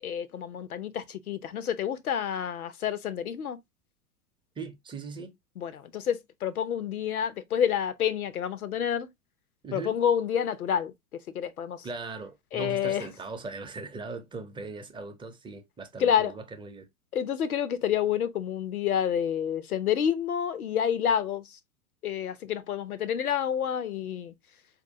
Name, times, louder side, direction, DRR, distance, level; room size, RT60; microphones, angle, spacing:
voice 1, 0.0-3.6 5.6-9.1 9.7-10.9 11.3-11.9 12.5-13.1 16.0-16.3 17.1-21.6 22.0-24.3, left 9 dB, 85° left, 0.7 m, -28 dB
voice 2, 4.6-5.3 9.6-10.0 11.8-16.9, right 3 dB, 10° right, 0.6 m, -39 dB
4.4 x 2.7 x 2.6 m
hypercardioid pair, 95°, 42 cm